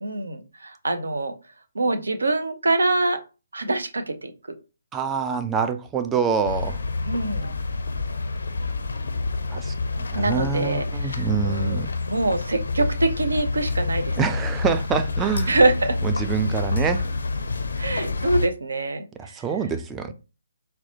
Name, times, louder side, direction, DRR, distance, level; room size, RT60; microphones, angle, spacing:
voice 1, 0.0-1.3 1.7-3.2 3.5-4.3 7.1-7.5 10.1-14.2 15.5-16.0 17.8-19.0, right 2 dB, 70° right, 8 dB, 0.5 m, -24 dB
voice 2, 4.9-6.8 9.5-9.7 10.1-11.9 14.2-15.6 16.0-17.0 19.2-20.1, right 6 dB, 10° right, 8 dB, 0.3 m, -26 dB
sound 1, 6.4-18.5, left 3 dB, 65° left, 0.4 m, -27 dB
4.0 x 2.1 x 2.7 m, 0.31 s
figure-of-eight pair, 135°, 0 cm